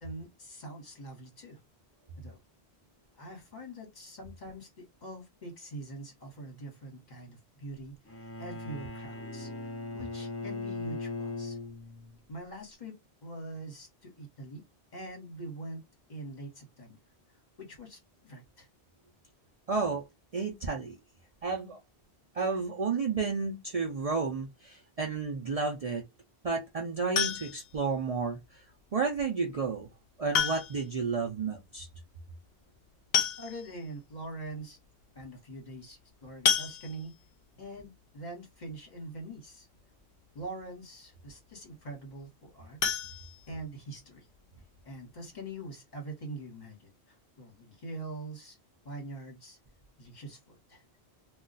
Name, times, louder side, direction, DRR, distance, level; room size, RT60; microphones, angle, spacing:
voice 1, 0.0-1.6 2.2-2.4 3.2-9.5 9.9-11.6 12.3-14.6 14.9-15.8 16.1-17.0 17.6-18.7 33.4-34.8 35.1-37.1 37.6-39.7 40.3-43.0 43.5-44.3 44.8-46.9 47.4-48.6 48.8-49.6 50.0-50.8, right 2 dB, 45° left, 1.3 m, -44 dB
Bowed string instrument, 8.1-12.2, left 3 dB, 25° left, 0.3 m, -39 dB
voice 2, 19.7-20.0 20.3-21.0 21.4-21.8 22.3-26.0 26.4-28.6 28.9-29.9 30.2-31.9, right 4 dB, 45° right, 0.5 m, -31 dB
sound 1, 27.2-27.8 29.3-29.4 30.3-31.0 31.3-31.4 31.6-31.7 32.7-32.8 33.1-33.9 34.4-34.5 34.8-35.0 36.5-37.3 42.8-44.0 44.4-44.5 44.9-45.0 45.3-45.4, left 7 dB, 70° left, 0.8 m, -30 dB
2.3 x 2.3 x 3.8 m
omnidirectional pair, 1.1 m